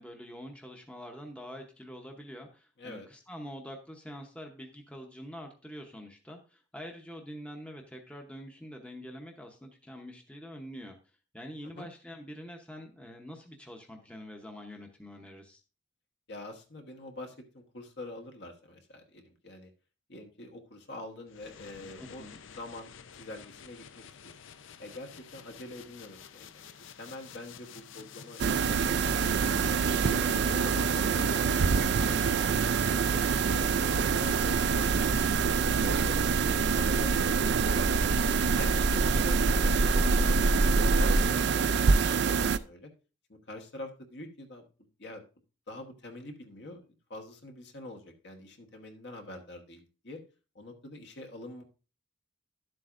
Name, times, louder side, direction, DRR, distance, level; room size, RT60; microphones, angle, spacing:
voice 1, 0.0-11.0 11.3-15.6 22.0-22.4 41.6-42.0, equal, 5° left, 2 dB, 0.8 m, -45 dB
voice 2, 16.3-19.7 20.1-22.3 22.6-24.4 24.8-26.6 27.0-29.4 29.8-35.2 35.6-38.0 38.4-42.9 43.3-44.7 45.0-45.2 45.7-50.2 50.5-51.6, left 2 dB, 55° left, 5 dB, 1.3 m, -46 dB
sound 1, 21.3-35.6, left 6 dB, 75° left, 0.6 m, -48 dB
sound 2, 28.4-42.6, right 6 dB, 55° right, 0.4 m, -26 dB
sound 3, 34.2-41.2, right 1 dB, 85° right, 1.0 m, -29 dB
11.5 x 7.7 x 2.5 m, 0.33 s
head